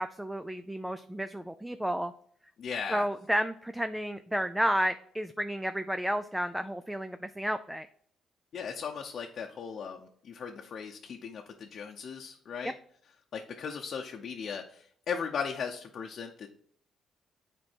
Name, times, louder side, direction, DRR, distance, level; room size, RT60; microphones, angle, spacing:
voice 1, 0.0-2.1 2.9-7.9 12.6-12.7, equal, 5° right, 10 dB, 0.4 m, -31 dB
voice 2, 2.6-3.1 8.5-12.7 13.3-16.5, left 6 dB, 60° left, 1 dB, 0.8 m, -37 dB
7.8 x 4.6 x 4.4 m, 0.62 s
cardioid pair, 90°, 0 cm